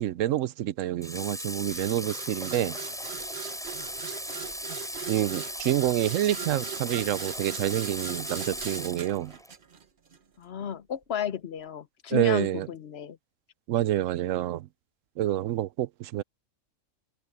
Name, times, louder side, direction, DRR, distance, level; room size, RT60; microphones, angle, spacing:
voice 1, 0.0-2.8 5.1-9.3 12.1-12.7 13.7-14.7 15.2-16.2, right 13 dB, 80° right, 1.0 m, -27 dB
Water / Water tap faucet, 1.0-9.5, equal, ahead, 6.6 m, -37 dB
sound 1, 1.7-10.2, right 7 dB, 45° right, 1.1 m, -41 dB
voice 2, 10.4-13.2, left 7 dB, 55° left, 1.1 m, -33 dB
open air
omnidirectional pair, 1.3 m